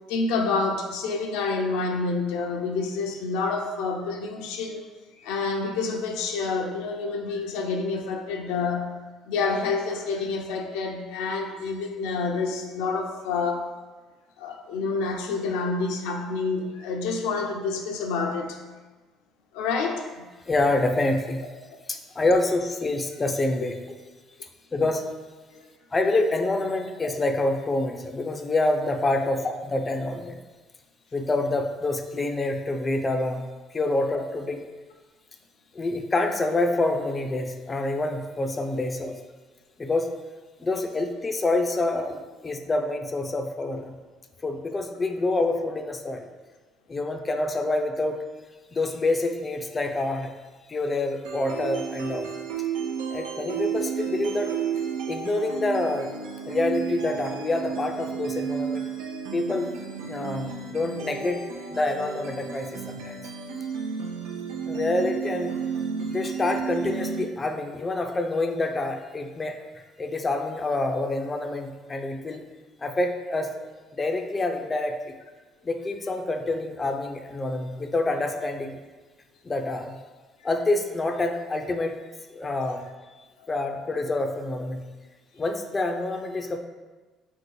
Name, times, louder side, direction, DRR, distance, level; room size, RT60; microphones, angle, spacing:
voice 1, 0.1-4.8 5.2-8.9 9.3-13.7 14.4-18.6 19.5-20.3 25.5-25.7 29.2-29.3, left 4 dB, 85° left, 3 dB, 0.4 m, -28 dB
voice 2, 20.5-21.4 21.9-23.8 24.4-25.1 25.9-30.4 31.1-34.6 35.7-39.2 39.8-40.1 40.6-44.0 44.4-46.3 46.9-48.2 48.7-50.3 50.7-52.3 53.1-54.5 55.1-56.1 56.5-58.9 59.3-59.7 60.1-61.4 61.7-63.2 64.7-65.5 66.0-69.6 70.0-72.4 72.8-73.7 73.9-75.0 75.6-78.8 79.4-80.0 80.4-82.0 82.3-82.8 83.5-84.9 85.4-86.6, left 2 dB, 25° left, 5 dB, 0.4 m, -27 dB
sound 1, 51.2-67.2, right 7 dB, 90° right, 0.5 m, -32 dB
3.6 x 2.6 x 4.5 m, 1.3 s
supercardioid pair, 90°, 0 cm